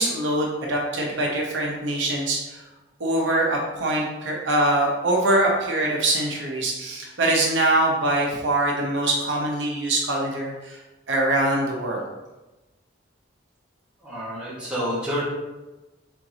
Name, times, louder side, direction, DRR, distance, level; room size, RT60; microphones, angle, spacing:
voice 1, 0.0-2.6 3.0-10.8 11.1-12.1, right 1 dB, 70° right, -1 dB, 0.8 m, -23 dB
voice 2, 14.0-15.2, equal, 5° right, -9 dB, 1.3 m, -28 dB
4.5 x 3.8 x 2.8 m, 1.1 s
head